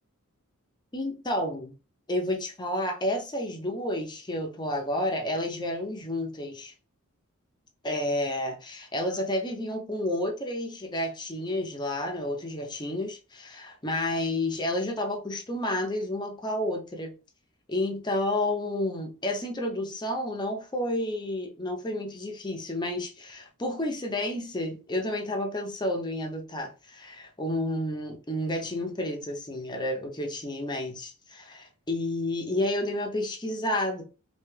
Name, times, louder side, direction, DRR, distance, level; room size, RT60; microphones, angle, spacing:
voice 1, 0.9-1.7 2.1-6.7 7.8-17.1 17.7-34.0, left 1 dB, 20° left, 0.7 m, -30 dB
3.3 x 2.8 x 3.2 m
head